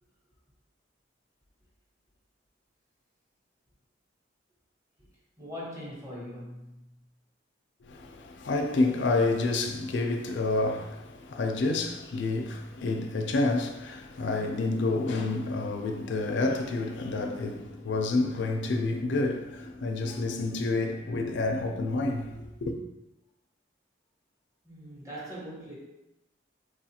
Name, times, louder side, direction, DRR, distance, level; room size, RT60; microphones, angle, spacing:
voice 1, 5.4-6.9 24.6-25.7, equal, 20° right, 1.1 m, -41 dB
voice 2, 7.8-22.8, left 2 dB, 70° left, 0.5 m, -29 dB
4.5 x 2.4 x 2.8 m
head